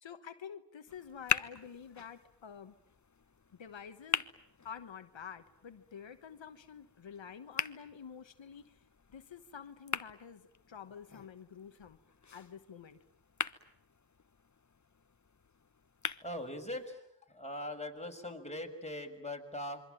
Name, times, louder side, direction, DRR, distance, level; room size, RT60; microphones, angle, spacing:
voice 1, 0.0-2.8 3.5-4.2 4.6-8.8 9.1-12.0 12.3-13.0, left 7 dB, 90° left, 9 dB, 1.3 m, -49 dB
sound 1, 0.9-16.9, left 5 dB, 40° left, 1.2 m, -42 dB
voice 2, 16.2-19.8, left 1 dB, 15° left, 2 dB, 6.5 m, -41 dB
27.0 x 24.0 x 9.1 m, 0.76 s
cardioid pair, 40°, 44 cm